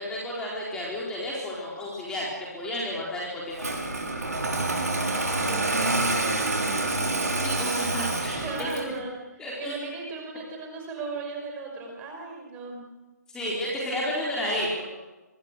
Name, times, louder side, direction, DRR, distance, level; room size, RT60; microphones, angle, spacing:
voice 1, 0.0-2.3 2.5-3.8 7.4-8.8 9.4-9.8 13.3-14.8, left 1 dB, 10° left, -5 dB, 4.2 m, -31 dB
Engine starting, 3.6-9.0, right 2 dB, 65° right, 5.9 m, -27 dB
voice 2, 5.0-6.3 8.4-12.8, right 4 dB, 15° right, 2 dB, 5.5 m, -37 dB
25.0 x 23.5 x 6.7 m, 1.2 s
figure-of-eight pair, 140°, 9 cm